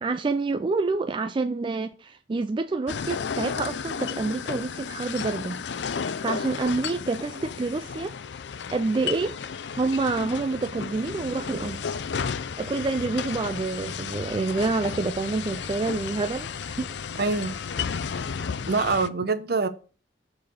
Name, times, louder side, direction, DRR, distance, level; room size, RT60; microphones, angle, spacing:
voice 1, 0.0-5.6 6.0-8.1 8.7-9.4 9.7-11.8 12.6-16.9, right 3 dB, 30° right, 0.3 m, -28 dB
sound 1, 2.9-19.1, left 6 dB, 70° left, 0.5 m, -33 dB
voice 2, 17.2-17.5 18.7-19.7, right 4 dB, 60° right, 0.8 m, -24 dB
6.6 x 4.1 x 6.5 m
head